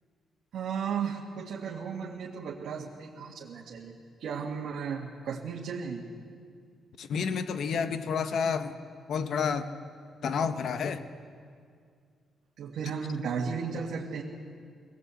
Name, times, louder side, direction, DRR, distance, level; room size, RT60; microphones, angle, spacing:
voice 1, 0.5-6.0 12.6-14.2, right 6 dB, 75° right, -3 dB, 2.0 m, -35 dB
voice 2, 7.0-8.8 9.1-9.7 10.2-11.0, left 6 dB, 65° left, 10 dB, 1.0 m, -29 dB
20.5 x 18.5 x 8.4 m, 2.1 s
cardioid pair, 120°, 0 cm